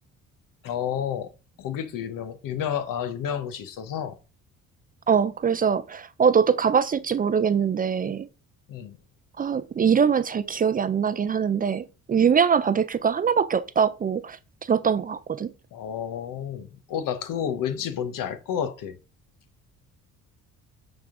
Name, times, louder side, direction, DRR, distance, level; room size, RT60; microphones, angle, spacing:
voice 1, 0.6-1.3 1.6-4.1 8.7-9.0 15.7-19.0, left 8 dB, 80° left, 1.0 m, -30 dB
voice 2, 5.1-8.3 9.4-15.5, right 7 dB, 30° right, 0.3 m, -23 dB
9.1 x 3.6 x 3.7 m
cardioid pair, 95°, 32 cm